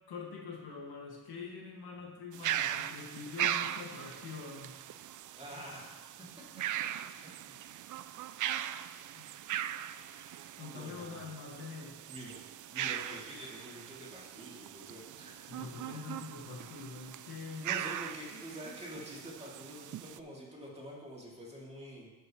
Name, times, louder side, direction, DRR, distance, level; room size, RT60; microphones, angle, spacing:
voice 1, 0.1-4.7 9.2-9.3 10.6-12.0 15.5-17.7, left 5 dB, 75° left, -2 dB, 2.2 m, -44 dB
sound 1, 2.3-20.2, right 11 dB, 50° right, 0.5 m, -39 dB
voice 2, 5.3-6.0 9.9-11.3 12.1-12.4 12.7-15.5 17.5-22.1, equal, 15° right, -5 dB, 2.9 m, -47 dB
11.5 x 6.8 x 3.3 m, 1.3 s
cardioid pair, 70°, 39 cm